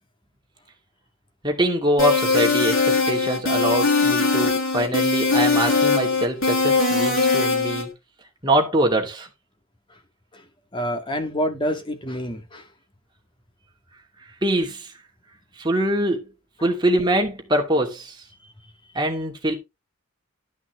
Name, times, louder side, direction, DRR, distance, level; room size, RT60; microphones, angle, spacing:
voice 1, 1.4-7.9 8.4-9.3 14.4-14.9 15.6-16.3 16.6-18.2 18.9-19.5, right 1 dB, 20° right, 2.5 m, -23 dB
sound 1, 2.0-7.8, left 4 dB, 65° left, 6.7 m, -20 dB
voice 2, 10.7-12.7, equal, 25° left, 2.1 m, -27 dB
12.5 x 5.9 x 3.7 m
head